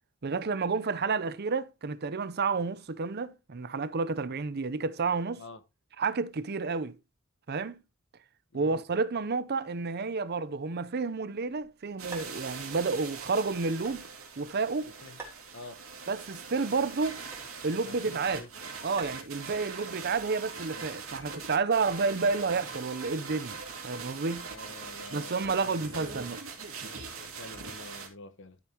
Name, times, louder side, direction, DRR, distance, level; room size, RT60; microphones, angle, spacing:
voice 1, 0.2-5.4 6.0-7.0 7.5-7.8 8.5-14.1 14.4-14.9 16.1-17.2 17.6-18.4 18.8-24.5 25.1-26.4, right 4 dB, 50° right, 0.7 m, -30 dB
voice 2, 8.5-8.8 14.8-15.2 15.5-15.8 17.7-18.5 24.5-26.3 27.0-28.6, left 3 dB, 60° left, 1.2 m, -48 dB
sound 1, 11.4-20.7, right 3 dB, 10° right, 3.1 m, -52 dB
sound 2, 12.0-28.1, right 5 dB, 85° right, 2.8 m, -42 dB
12.5 x 7.1 x 2.9 m
head